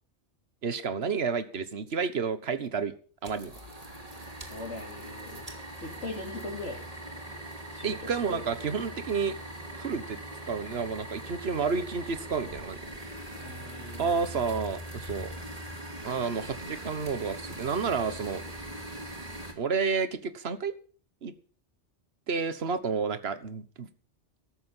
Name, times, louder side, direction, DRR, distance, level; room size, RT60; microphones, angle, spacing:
voice 1, 0.6-2.9 3.2-3.5 7.8-9.3 9.7-10.2 10.5-13.1 14.0-15.3 16.0-18.7 19.6-20.7 21.2-21.3 22.3-23.9, right 5 dB, 60° right, 12 dB, 1.5 m, -30 dB
sound 1, 3.2-19.5, right 1 dB, 30° right, 2.7 m, -41 dB
voice 2, 4.5-5.5 5.8-6.8 7.7-8.4 13.3-14.2, left 2 dB, 80° left, -1 dB, 3.0 m, -40 dB
14.5 x 13.0 x 5.6 m, 0.41 s
omnidirectional pair, 1.2 m